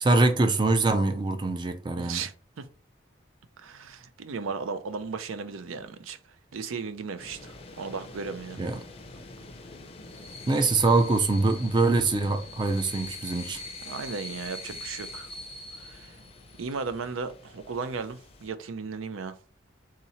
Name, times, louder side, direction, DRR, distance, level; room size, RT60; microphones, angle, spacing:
voice 1, 0.0-2.2 8.6-8.8 10.5-13.6, right 3 dB, 25° right, 0.4 m, -24 dB
voice 2, 2.0-2.7 3.6-6.2 6.5-8.6 13.9-15.3 15.8-16.1 16.6-19.3, right 5 dB, 90° right, 0.5 m, -35 dB
sound 1, 7.2-18.5, left 2 dB, 30° left, 0.5 m, -43 dB
3.7 x 2.9 x 4.1 m
head